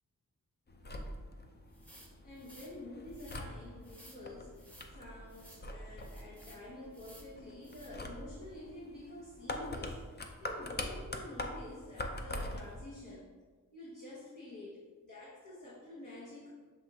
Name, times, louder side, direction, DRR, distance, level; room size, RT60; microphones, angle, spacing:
sound 1, 0.7-12.8, left 1 dB, 30° left, 0.5 m, -44 dB
sound 2, 1.7-2.7 3.1-3.4 3.8-4.2 4.6-4.9 5.3-5.6 6.0-6.6 6.9-7.3 7.6-7.9, equal, 5° left, 0.9 m, -57 dB
voice 1, 2.2-13.4 13.7-16.6, left 1 dB, 60° left, -9 dB, 1.1 m, -49 dB
7.1 x 2.8 x 2.4 m, 1.4 s
wide cardioid pair, 50°, 36 cm